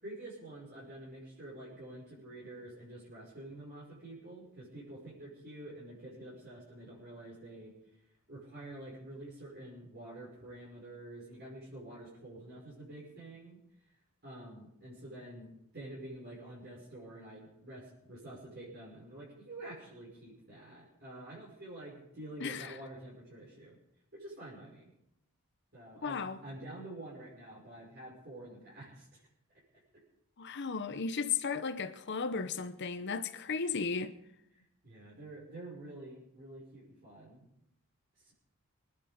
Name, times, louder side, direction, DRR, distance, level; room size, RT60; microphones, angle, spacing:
voice 1, 0.0-7.7 8.3-13.6 14.2-23.8 24.1-24.9 25.7-29.2 34.5-37.5 38.2-38.3, right 1 dB, 50° right, 5.7 m, -48 dB
voice 2, 22.4-22.8 26.0-26.4 30.4-34.1, left 5 dB, 55° left, 0.8 m, -35 dB
23.5 x 10.5 x 5.1 m
head